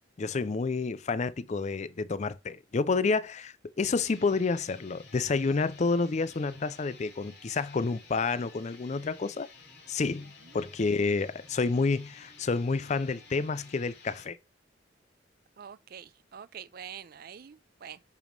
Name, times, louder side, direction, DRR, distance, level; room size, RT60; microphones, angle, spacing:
voice 1, 0.2-9.5 9.9-14.4, left 4 dB, 35° left, 0.4 m, -29 dB
sound 1, 3.9-14.3, left 3 dB, 60° left, 2.5 m, -53 dB
voice 2, 15.6-18.0, right 8 dB, 50° right, 0.4 m, -46 dB
8.3 x 3.0 x 5.1 m
head